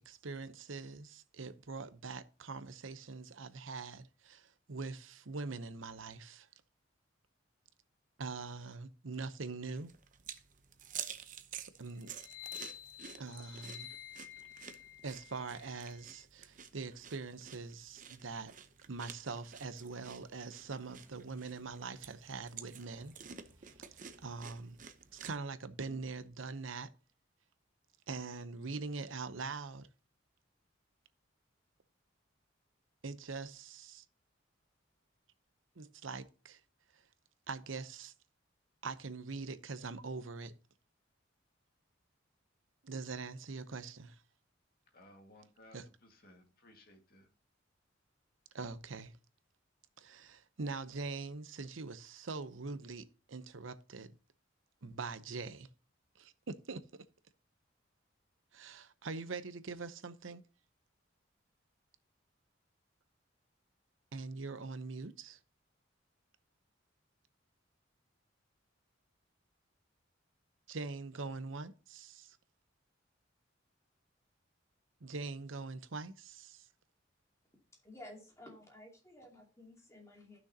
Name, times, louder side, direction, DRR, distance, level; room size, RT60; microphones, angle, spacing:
voice 1, 0.1-6.5 8.2-9.9 11.8-12.1 13.2-13.9 15.0-18.5 18.9-23.1 23.9-24.8 25.1-26.9 28.1-29.9 33.0-34.0 35.8-36.6 36.9-37.0 37.5-38.1 38.8-40.5 42.8-44.2 45.7-45.8 48.5-49.2 50.0-54.2 54.8-55.7 56.2-57.0 58.5-60.4 64.1-65.4 70.7-72.4 75.0-76.7, right 4 dB, 80° right, 0.8 m, -43 dB
sound 1, 9.8-25.4, right 8 dB, 40° right, 0.8 m, -50 dB
sound 2, 12.1-16.1, left 12 dB, 75° left, 1.5 m, -50 dB
sound 3, 19.4-25.8, equal, 10° right, 1.6 m, -68 dB
voice 2, 44.9-47.3, left 1 dB, 50° left, 2.0 m, -60 dB
voice 3, 77.7-80.4, left 1 dB, 15° left, 2.6 m, -54 dB
14.5 x 6.3 x 2.8 m
head